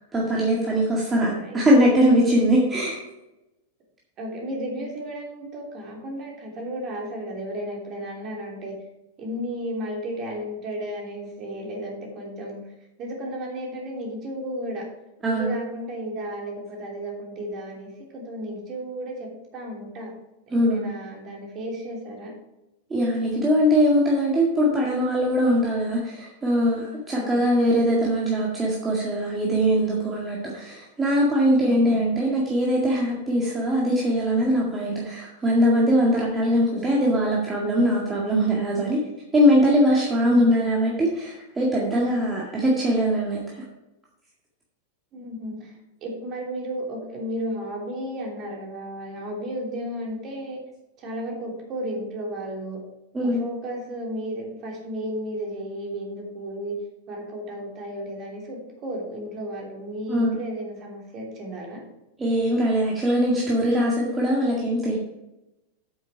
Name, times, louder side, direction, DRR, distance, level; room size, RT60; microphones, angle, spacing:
voice 1, 0.1-3.0 15.2-15.6 20.5-20.9 22.9-39.0 39.3-43.6 53.1-53.4 60.1-60.4 62.2-65.0, equal, 15° right, -4 dB, 2.0 m, -21 dB
voice 2, 1.1-1.7 4.2-8.8 9.2-12.7 13.0-14.9 15.3-20.1 20.5-22.3 27.1-27.5 31.6-32.0 36.3-36.9 45.1-50.6 51.0-52.8 53.2-56.8 57.1-61.8, equal, 35° right, -1 dB, 3.2 m, -34 dB
8.7 x 7.8 x 4.8 m, 0.93 s
figure-of-eight pair, 90°, 0 cm